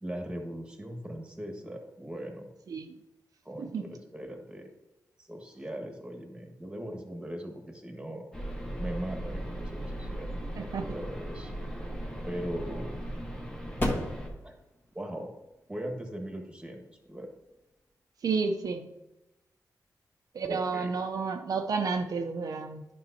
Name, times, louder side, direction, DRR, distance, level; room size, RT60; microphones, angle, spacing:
voice 1, 0.0-2.5 3.4-4.7 5.2-8.2 8.8-11.5 12.2-12.9 14.4-14.5 14.9-15.3 15.7-17.3 20.5-20.9, equal, 15° right, 3 dB, 1.4 m, -39 dB
voice 2, 3.6-3.9 10.6-10.9 18.2-18.9 20.3-22.9, right 4 dB, 65° right, 4 dB, 0.5 m, -31 dB
sound 1, 8.3-14.3, right 1 dB, 10° left, 1.2 m, -38 dB
sound 2, 13.4-18.5, left 1 dB, 30° left, 1.4 m, -39 dB
10.5 x 5.3 x 2.8 m, 0.95 s
wide cardioid pair, 105°, 7 cm